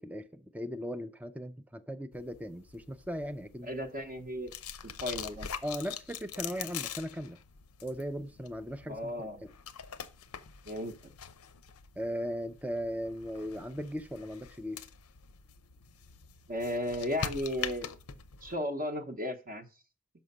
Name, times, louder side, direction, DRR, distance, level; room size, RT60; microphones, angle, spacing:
voice 1, 0.0-3.7 5.6-7.4 7.8-9.5 12.0-14.8, equal, 5° right, 0.4 m, -38 dB
sound 1, 2.1-18.6, left 8 dB, 85° left, 0.7 m, -44 dB
voice 2, 3.6-4.5 4.8-5.5 8.9-9.4 10.7-10.9 16.5-17.9 18.4-19.7, left 1 dB, 40° right, 0.7 m, -35 dB
6.2 x 5.7 x 5.3 m
head